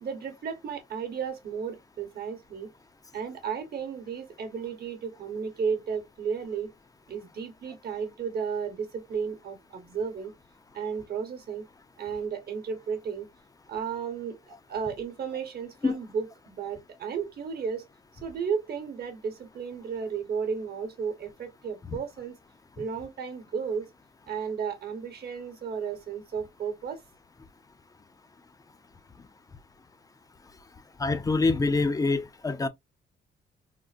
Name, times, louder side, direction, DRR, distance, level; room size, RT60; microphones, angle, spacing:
voice 1, 0.0-2.7 3.1-6.7 7.1-10.3 10.7-11.6 12.0-13.3 13.7-17.8 18.2-22.3 22.8-23.9 24.3-27.0, right 6 dB, 50° right, 1.0 m, -33 dB
voice 2, 31.0-32.7, left 3 dB, 20° left, 0.5 m, -25 dB
3.7 x 2.1 x 2.4 m
cardioid pair, 90°, 20 cm